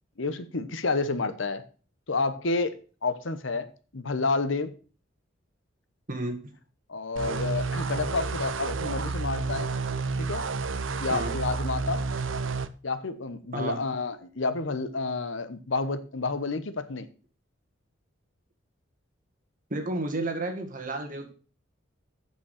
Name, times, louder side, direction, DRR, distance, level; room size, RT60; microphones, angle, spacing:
voice 1, 0.2-1.6 2.1-2.8 3.0-3.7 3.9-4.7 6.9-9.7 10.2-10.5 11.0-12.1 12.8-17.1, left 3 dB, 70° left, 1.0 m, -29 dB
voice 2, 6.1-6.5 11.1-11.4 13.5-13.8 19.7-21.3, right 2 dB, 40° right, 1.8 m, -32 dB
sound 1, 7.2-12.7, right 4 dB, 75° right, 0.7 m, -30 dB
8.4 x 6.1 x 6.4 m
head